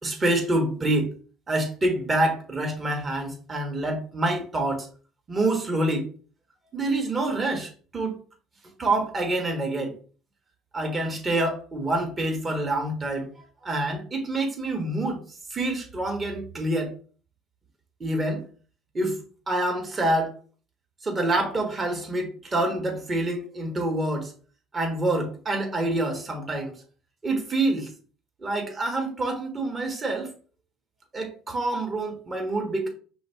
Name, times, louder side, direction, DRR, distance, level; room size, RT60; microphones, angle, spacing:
voice 1, 0.0-1.1 1.5-4.9 5.3-6.1 6.7-8.2 8.8-9.9 10.7-13.3 13.6-15.2 15.5-16.9 18.0-18.4 18.9-20.3 21.0-24.3 24.7-26.7 27.2-27.9 28.4-30.3 31.1-32.9, right 2 dB, 25° right, 1.3 m, -26 dB
4.9 x 3.4 x 2.9 m
figure-of-eight pair, 55°, 0 cm